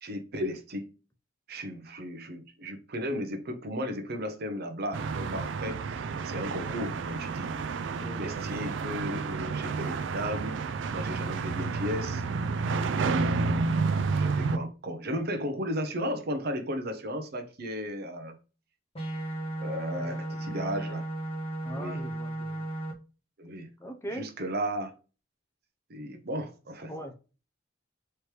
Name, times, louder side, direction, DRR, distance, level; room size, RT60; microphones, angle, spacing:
voice 1, 0.0-0.9 1.5-7.5 8.2-10.6 10.9-12.2 12.9-13.5 14.1-18.4 19.6-21.0 21.8-22.0 23.4-23.7 24.1-24.9 25.9-26.9, equal, 55° right, 0.8 m, -35 dB
sound 1, 4.9-14.6, right 4 dB, 70° right, 0.4 m, -30 dB
voice 2, 8.0-8.3 19.9-20.2 21.6-22.7 23.8-24.3 26.9-27.1, equal, 15° left, 0.8 m, -40 dB
sound 2, 18.9-22.9, right 1 dB, 30° left, 1.4 m, -35 dB
4.4 x 3.2 x 3.2 m
head